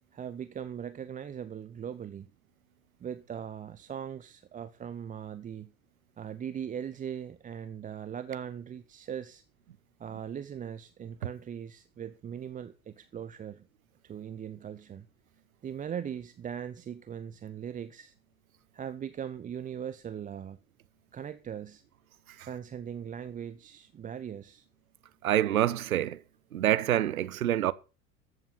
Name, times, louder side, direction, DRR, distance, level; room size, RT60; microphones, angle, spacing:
voice 1, 0.1-2.3 3.0-5.7 6.2-9.4 10.0-13.6 14.0-15.1 15.6-18.1 18.7-20.6 21.1-21.8 22.4-24.6, right 8 dB, 20° right, 0.7 m, -39 dB
voice 2, 25.2-26.2 26.5-27.7, right 12 dB, 75° right, 0.8 m, -26 dB
14.0 x 7.9 x 5.7 m
figure-of-eight pair, 75°, 43 cm